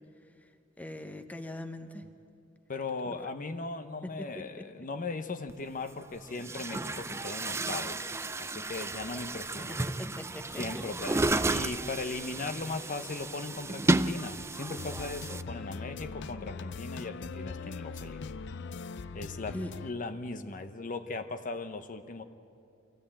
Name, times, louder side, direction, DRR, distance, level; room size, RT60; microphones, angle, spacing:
voice 1, 0.8-2.0 4.0-4.6 9.7-10.6 19.5-19.7, left 1 dB, 10° left, 6 dB, 1.0 m, -41 dB
voice 2, 2.7-9.8 10.6-18.5 19.1-19.6 19.8-22.2, left 3 dB, 40° left, 8 dB, 0.8 m, -38 dB
Chatter / Gurgling / Tap, 5.5-5.6 6.3-15.4, right 2 dB, 15° right, 0.4 m, -32 dB
sound 1, 14.8-19.9, left 4 dB, 60° left, 0.5 m, -41 dB
24.5 x 16.0 x 8.6 m, 2.5 s
head